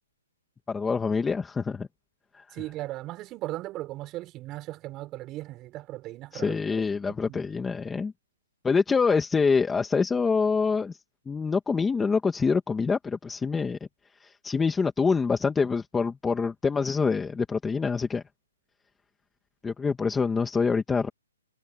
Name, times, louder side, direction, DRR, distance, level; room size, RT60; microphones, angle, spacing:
voice 1, 0.7-1.9 2.3-2.6 6.3-8.1 8.6-11.0 11.3-13.8 14.2-18.2 19.6-21.1, left 5 dB, 5° left, 1.9 m, -26 dB
voice 2, 2.5-6.6 7.1-7.4, right 16 dB, 20° right, 5.8 m, -37 dB
hypercardioid pair, 160°, 0 cm